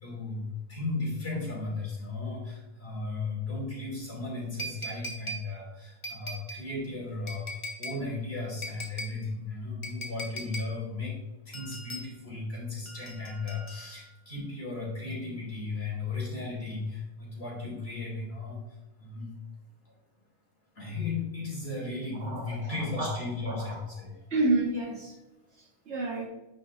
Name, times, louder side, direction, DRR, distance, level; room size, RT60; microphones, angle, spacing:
voice 1, 0.0-11.2 11.4-18.6 19.0-19.3 19.8-19.9 20.7-24.2, left 3 dB, 45° left, -5 dB, 3.1 m, -35 dB
sound 1, 4.6-5.5 6.0-6.6 7.3-8.0 8.6-9.2 9.8-10.7 11.5-12.1 12.9-14.1 15.1-15.2, equal, 25° left, 1.0 m, -39 dB
voice 2, 22.1-23.2 23.5-23.8 24.3-25.2 25.6-26.3, right 2 dB, 55° right, 0 dB, 1.3 m, -30 dB
10.0 x 5.7 x 2.6 m, 1.0 s
omnidirectional pair, 1.5 m